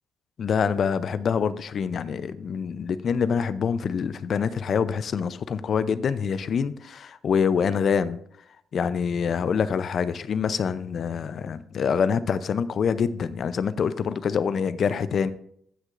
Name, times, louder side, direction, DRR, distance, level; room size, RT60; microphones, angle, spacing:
voice 1, 0.4-8.2 8.7-15.3, left 6 dB, 55° left, 15 dB, 0.5 m, -25 dB
15.5 x 6.2 x 2.5 m, 0.68 s
cardioid pair, 90°, 0 cm